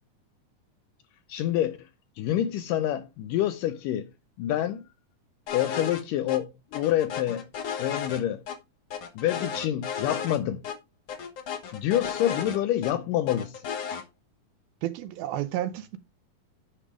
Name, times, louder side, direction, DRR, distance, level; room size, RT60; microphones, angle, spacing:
voice 1, 1.3-1.9 2.2-4.1 4.4-4.8 5.5-7.5 7.8-8.4 9.2-10.6 11.7-13.6, left 12 dB, 80° left, 2.0 m, -27 dB
sound 1, 5.5-6.0 6.3-6.4 6.7-8.6 8.9-10.4 10.6-10.8 11.1-12.9 13.3-14.0, left 7 dB, 60° left, 1.7 m, -34 dB
voice 2, 14.8-16.0, right 13 dB, 80° right, 2.6 m, -31 dB
9.9 x 3.5 x 4.9 m
omnidirectional pair, 4.2 m